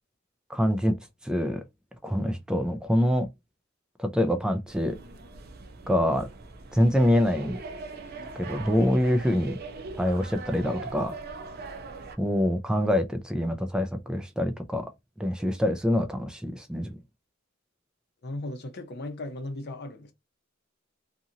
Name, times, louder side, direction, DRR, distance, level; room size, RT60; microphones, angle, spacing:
voice 1, 0.5-1.0 1.2-1.6 2.0-3.3 4.0-5.0 5.9-6.3 6.7-7.6 8.4-9.6 10.0-11.2 12.2-14.9 15.2-17.0, equal, 5° right, 0.3 m, -25 dB
sound 1, 4.7-12.2, right 3 dB, 50° right, 0.6 m, -41 dB
voice 2, 18.2-20.1, left 2 dB, 55° left, 0.7 m, -36 dB
2.7 x 2.5 x 2.7 m
head